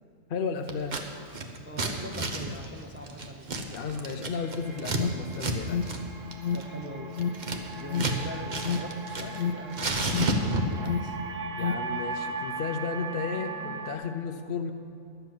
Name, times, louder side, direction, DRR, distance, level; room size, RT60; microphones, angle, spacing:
voice 1, 0.3-1.0 3.7-6.0 11.6-14.7, left 5 dB, 55° left, 5 dB, 0.7 m, -33 dB
Scissors, 0.7-1.0 1.3-5.0 5.3-5.6 5.8-6.0 6.3-8.2 8.5-9.4 9.7-10.9, right 2 dB, 40° right, 0.8 m, -31 dB
voice 2, 1.6-3.5 6.5-7.2 7.7-11.2, equal, 15° right, 2 dB, 0.4 m, -42 dB
sound 1, 3.7-14.0, right 4 dB, 65° right, 1.2 m, -39 dB
Alarm, 4.6-11.9, left 6 dB, 70° left, 1.0 m, -33 dB
12.0 x 6.9 x 7.6 m, 2.4 s
omnidirectional pair, 1.5 m